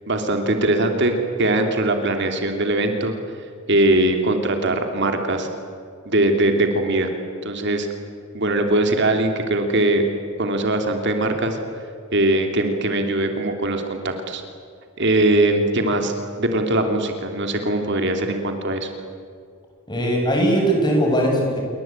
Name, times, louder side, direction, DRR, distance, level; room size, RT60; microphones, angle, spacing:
voice 1, 0.1-3.1 3.7-5.5 6.0-7.1 7.4-7.9 8.3-10.0 10.4-11.6 12.1-14.4 15.0-18.9, right 1 dB, 55° right, 5 dB, 2.9 m, -21 dB
voice 2, 19.9-21.6, right 1 dB, 20° left, 0 dB, 7.8 m, -19 dB
28.5 x 23.5 x 8.9 m, 2.2 s
head